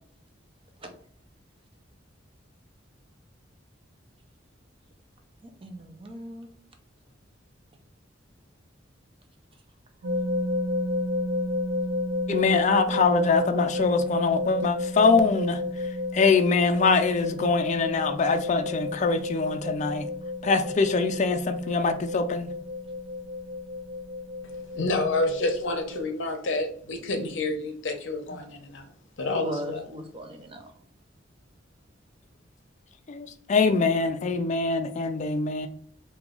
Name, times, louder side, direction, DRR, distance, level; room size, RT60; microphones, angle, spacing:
voice 1, 5.4-6.5 29.3-30.7, equal, 30° right, 4 dB, 0.5 m, -38 dB
sound 1, 10.0-26.0, left 2 dB, 80° right, 0.5 m, -31 dB
voice 2, 12.3-15.6 16.1-20.1 20.4-22.5 33.1-35.7, left 4 dB, 40° left, 7 dB, 0.4 m, -23 dB
voice 3, 24.5-28.9 29.2-29.8, left 2 dB, 75° left, 4 dB, 0.6 m, -29 dB
3.0 x 2.3 x 3.6 m, 0.62 s
head